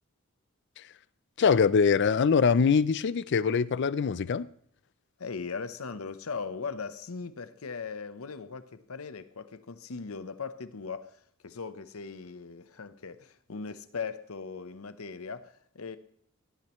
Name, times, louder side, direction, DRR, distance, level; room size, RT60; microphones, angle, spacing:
voice 1, 1.4-4.5, left 6 dB, 55° left, 0.4 m, -23 dB
voice 2, 5.2-16.0, left 5 dB, 85° left, 0.9 m, -39 dB
17.0 x 12.0 x 3.1 m
head